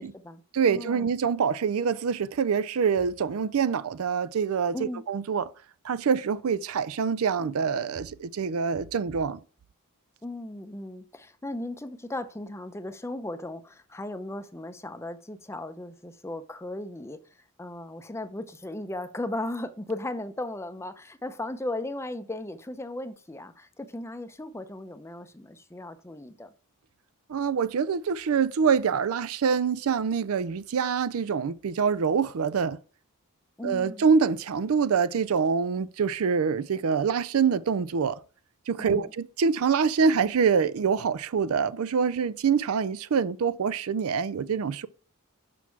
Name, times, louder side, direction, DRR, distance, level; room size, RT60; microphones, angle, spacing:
voice 1, 0.0-0.4 0.7-1.1 4.7-5.0 10.2-17.2 17.6-26.5 33.6-34.0 38.8-39.1, left 1 dB, 10° left, 0.6 m, -36 dB
voice 2, 0.5-5.5 5.8-9.4 27.3-32.8 33.6-38.2 38.7-44.9, right 6 dB, 70° right, 0.4 m, -25 dB
6.2 x 5.9 x 4.6 m
head